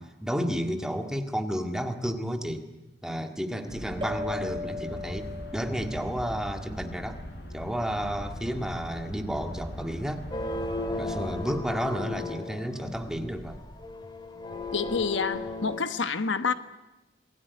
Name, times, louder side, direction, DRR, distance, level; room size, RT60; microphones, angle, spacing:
voice 1, 0.0-2.7 3.0-7.2 7.5-10.2 11.0-13.6, equal, 5° right, 4 dB, 1.9 m, -31 dB
sound 1, 3.7-11.6, equal, 60° left, 5.3 m, -40 dB
sound 2, 4.0-7.0, left 2 dB, 30° right, 2.8 m, -38 dB
sound 3, 10.3-15.8, left 3 dB, 25° left, 2.5 m, -36 dB
voice 2, 14.7-16.5, left 5 dB, 85° left, 10 dB, 1.3 m, -28 dB
27.0 x 20.0 x 9.6 m, 1.0 s
head